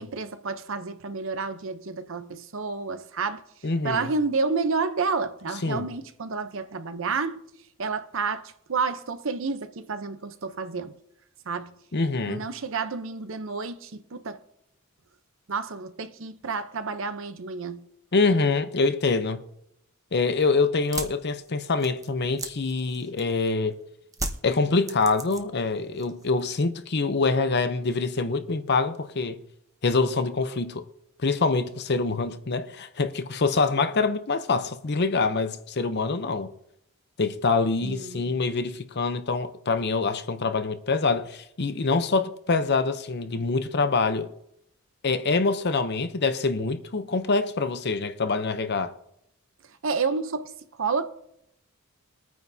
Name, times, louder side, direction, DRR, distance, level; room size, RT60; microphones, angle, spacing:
voice 1, 0.0-3.4 3.8-7.4 7.8-11.0 11.5-11.7 12.3-14.4 15.5-17.9 37.8-38.4 49.8-51.0, right 4 dB, 65° right, 0.8 m, -30 dB
voice 2, 3.6-4.1 5.6-5.9 11.9-12.4 18.1-19.4 20.1-23.8 24.4-29.4 29.8-30.8 31.2-36.5 37.2-44.3 45.0-48.9, left 4 dB, 50° left, 0.7 m, -25 dB
sound 1, 20.8-23.5 24.1-25.7 26.0-26.5, right 3 dB, 15° right, 0.9 m, -35 dB
22.5 x 9.3 x 2.8 m
head